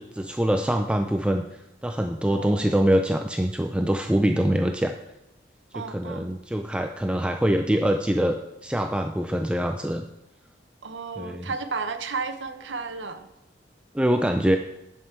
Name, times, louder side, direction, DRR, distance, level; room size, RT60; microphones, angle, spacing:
voice 1, 0.0-1.5 1.8-4.9 5.8-8.4 8.6-10.0 11.2-11.5 13.9-14.6, right 1 dB, 5° right, 5 dB, 0.4 m, -24 dB
voice 2, 2.3-2.8 5.7-6.3 10.8-13.3, right 4 dB, 85° right, 9 dB, 0.9 m, -33 dB
11.0 x 7.5 x 4.6 m, 0.94 s
head